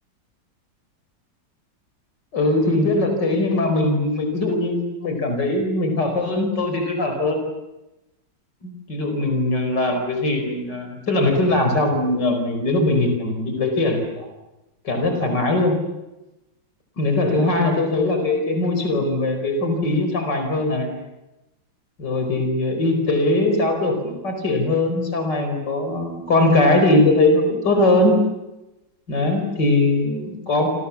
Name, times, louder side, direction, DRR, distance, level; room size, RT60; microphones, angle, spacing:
voice 1, 2.3-7.4 8.6-14.3 14.8-15.8 17.0-21.0 22.0-28.2 29.1-30.7, left 2 dB, 65° left, 5 dB, 5.4 m, -20 dB
29.0 x 28.0 x 7.2 m, 0.97 s
omnidirectional pair, 2.1 m